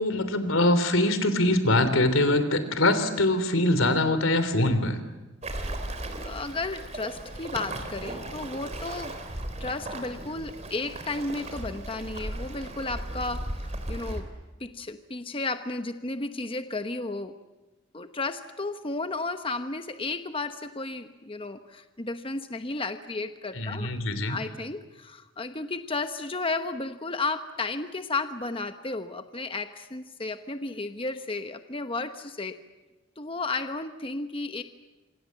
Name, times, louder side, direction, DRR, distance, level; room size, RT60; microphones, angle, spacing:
voice 1, 0.0-5.0 23.5-24.4, left 1 dB, 85° left, 11 dB, 3.3 m, -23 dB
Waves surf, 5.4-14.2, right 1 dB, 35° right, 3.7 m, -36 dB
voice 2, 6.2-9.1 9.6-14.3 14.6-17.3 17.9-23.9 24.3-32.6 33.2-34.6, left 3 dB, 25° left, 8 dB, 1.0 m, -33 dB
27.0 x 26.0 x 7.6 m, 1.1 s
head